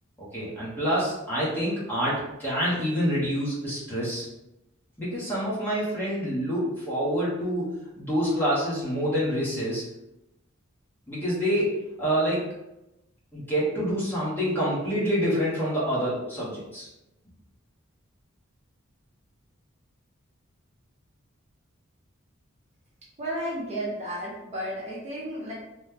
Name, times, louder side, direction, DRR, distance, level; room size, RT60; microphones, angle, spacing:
voice 1, 0.2-4.3 5.0-9.8 11.1-11.7 12.0-12.5 13.3-16.9, equal, 10° left, -8 dB, 1.0 m, -27 dB
voice 2, 23.2-25.5, right 1 dB, 35° right, -6 dB, 0.9 m, -33 dB
3.0 x 2.2 x 3.5 m, 0.91 s
head